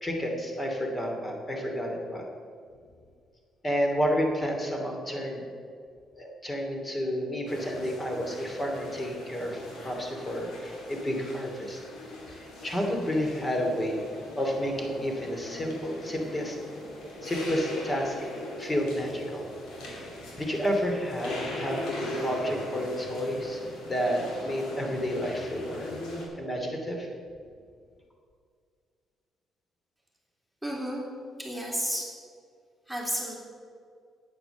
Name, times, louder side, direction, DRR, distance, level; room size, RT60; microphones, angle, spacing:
voice 1, 0.0-2.2 3.6-5.4 6.1-11.8 12.3-14.0 14.4-16.6 17.2-18.1 18.6-19.5 20.4-21.8 22.2-23.6 23.9-25.9 26.4-27.1, equal, 25° left, 2 dB, 2.7 m, -30 dB
sound 1, 7.5-26.3, left 1 dB, 85° left, 3.1 m, -40 dB
voice 2, 30.6-31.0 31.4-32.1 32.9-33.4, equal, ahead, -3 dB, 3.1 m, -32 dB
9.0 x 9.0 x 7.1 m, 2.2 s
cardioid pair, 90°, 0 cm